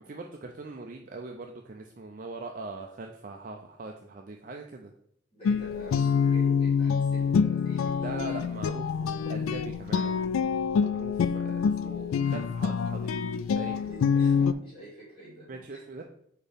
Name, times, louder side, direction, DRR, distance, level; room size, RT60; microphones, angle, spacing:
voice 1, 0.1-4.9 8.0-10.2 10.8-13.1 13.5-13.8 15.5-16.0, right 3 dB, 40° right, 3 dB, 0.5 m, -41 dB
voice 2, 5.3-8.1 13.7-15.9, right 1 dB, 25° left, -7 dB, 2.5 m, -47 dB
Guitar, 5.5-14.5, left 6 dB, 85° left, 0.3 m, -26 dB
5.0 x 4.4 x 5.1 m, 0.72 s
head